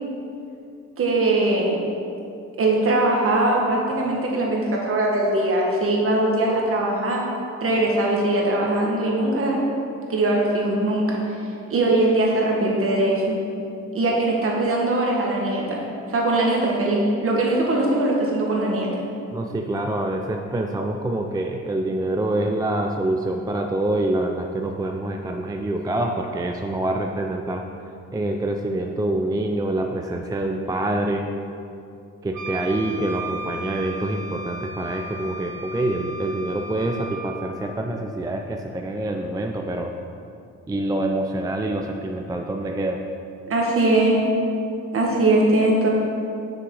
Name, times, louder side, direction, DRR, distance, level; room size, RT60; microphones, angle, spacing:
voice 1, 1.0-1.8 2.6-7.2 7.6-9.6 10.1-11.4 11.7-13.4 13.9-15.8 16.1-18.9 43.5-44.2 44.9-45.9, right 2 dB, 45° right, -2 dB, 1.7 m, -21 dB
voice 2, 19.3-27.6 28.1-31.3 32.2-39.9 40.7-43.0, right 1 dB, 10° right, 3 dB, 0.4 m, -26 dB
Wind instrument woodwind instrument, 32.3-37.5, right 2 dB, 70° right, 1.6 m, -35 dB
6.2 x 6.1 x 4.8 m, 2.6 s
cardioid pair, 90°, 30 cm